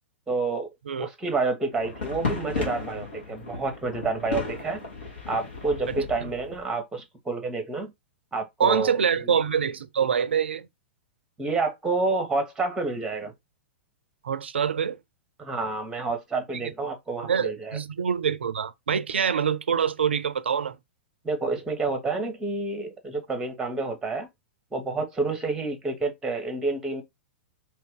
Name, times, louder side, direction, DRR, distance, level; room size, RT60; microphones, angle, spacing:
voice 1, 0.3-0.7 1.0-4.8 5.3-7.9 8.3-9.4 11.4-13.3 15.4-17.8 21.2-24.3 24.7-27.0, right 3 dB, 10° right, 1.0 m, -29 dB
sound 1, 1.7-6.7, left 4 dB, 65° left, 1.4 m, -34 dB
voice 2, 8.6-10.7 14.2-15.0 16.5-16.7 17.2-20.8, right 7 dB, 70° right, 0.5 m, -25 dB
2.8 x 2.8 x 3.6 m
figure-of-eight pair, 100°, 6 cm